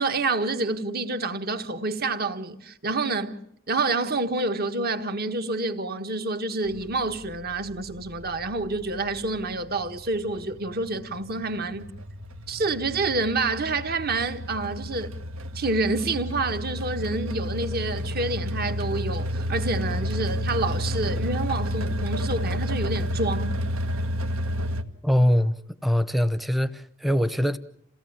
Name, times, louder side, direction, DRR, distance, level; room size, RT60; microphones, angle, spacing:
voice 1, 0.0-3.4 3.7-11.9 12.5-15.1 15.5-23.6, right 3 dB, 45° right, 1.5 m, -28 dB
sound 1, 6.6-24.8, equal, 75° right, 1.7 m, -31 dB
voice 2, 25.0-27.6, equal, ahead, 0.9 m, -23 dB
28.0 x 17.0 x 8.8 m
head